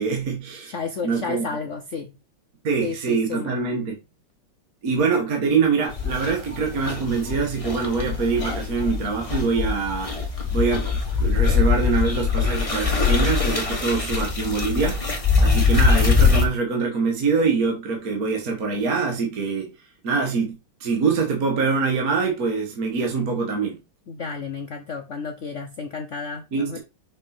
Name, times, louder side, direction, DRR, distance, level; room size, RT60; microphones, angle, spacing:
voice 1, 0.0-0.7 1.0-1.5 2.6-4.0 4.8-10.1 10.5-10.9 11.2-15.0 15.4-19.7 20.0-23.8 26.5-26.8, right 5 dB, 45° right, 1.8 m, -24 dB
voice 2, 0.6-2.1 2.8-3.6 24.1-26.8, left 5 dB, 90° left, 0.6 m, -32 dB
sound 1, 5.9-16.4, left 5 dB, 15° left, 1.5 m, -22 dB
6.2 x 5.3 x 4.3 m
omnidirectional pair, 2.3 m